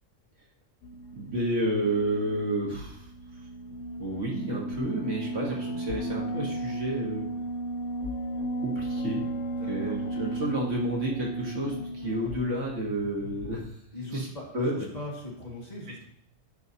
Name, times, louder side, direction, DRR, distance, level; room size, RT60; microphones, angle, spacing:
sound 1, 0.8-13.6, right 1 dB, 65° left, 0.9 m, -35 dB
voice 1, 1.1-3.1 4.0-7.3 8.6-9.2 9.7-13.7 14.1-14.3 14.5-14.7, right 1 dB, 65° right, -3 dB, 1.8 m, -30 dB
voice 2, 9.6-10.0 13.9-16.0, left 1 dB, 30° left, -4 dB, 2.0 m, -39 dB
10.0 x 6.2 x 2.8 m, 0.71 s
omnidirectional pair, 1.3 m